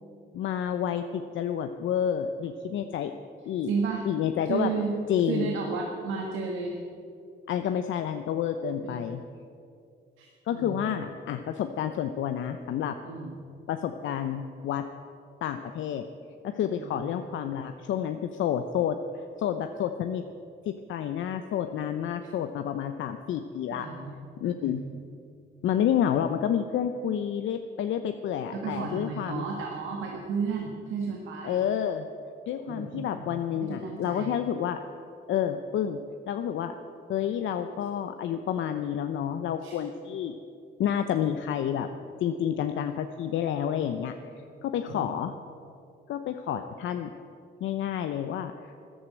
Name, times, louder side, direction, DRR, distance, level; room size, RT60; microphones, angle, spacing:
voice 1, 0.3-3.1 3.5-3.7 4.0-4.7 5.1-5.5 7.5-9.2 10.5-13.0 13.7-14.9 15.4-16.1 16.4-20.2 20.7-23.9 24.4-24.8 25.6-29.4 31.4-32.1 32.5-34.8 35.3-36.0 36.3-36.7 37.1-40.4 40.8-41.9 42.2-45.3 46.1-47.1 47.6-48.8, left 9 dB, 75° left, 7 dB, 0.7 m, -29 dB
voice 2, 3.6-4.0 4.5-4.9 5.3-6.8 8.8-8.9 10.2-10.8 13.0-13.4 16.8-17.1 23.7-24.1 24.6-25.0 28.5-31.6 32.7-34.3 39.6-39.8 44.9-45.1, right 5 dB, 90° right, 0 dB, 1.7 m, -33 dB
14.0 x 11.0 x 7.7 m, 2.5 s
cardioid pair, 90°, 20 cm